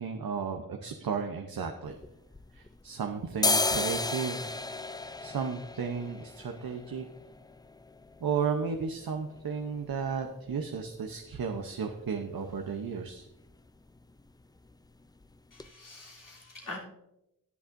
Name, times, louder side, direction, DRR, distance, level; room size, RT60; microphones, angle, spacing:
voice 1, 0.0-1.9 2.5-4.5 5.2-7.0 8.2-13.2, right 6 dB, 80° right, 4 dB, 0.8 m, -34 dB
sound 1, 1.8-2.9 3.3-11.0 11.3-11.4 11.6-12.2 12.5-12.7 13.0-13.2 13.5-14.2 14.6-14.7 15.2-15.3 15.6-15.7, left 3 dB, 10° left, 0.4 m, -34 dB
voice 2, 15.5-16.8, left 2 dB, 65° left, -4 dB, 3.2 m, -44 dB
18.5 x 7.2 x 2.6 m, 0.88 s
wide cardioid pair, 80°, 35 cm